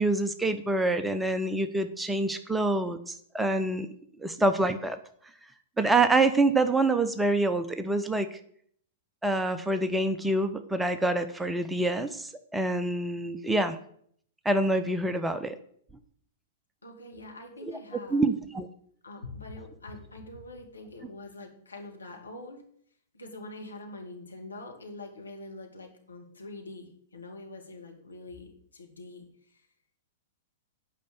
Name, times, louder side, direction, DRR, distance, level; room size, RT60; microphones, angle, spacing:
voice 1, 0.0-3.9 4.2-5.0 5.8-8.3 9.2-13.8 14.4-15.6 17.6-17.8 18.1-18.7, right 2 dB, 5° right, 9 dB, 0.7 m, -26 dB
voice 2, 16.8-18.2 19.0-22.6 23.1-29.2, left 2 dB, 80° left, 1 dB, 2.3 m, -44 dB
8.5 x 5.5 x 7.8 m, 0.63 s
figure-of-eight pair, 105°, 0 cm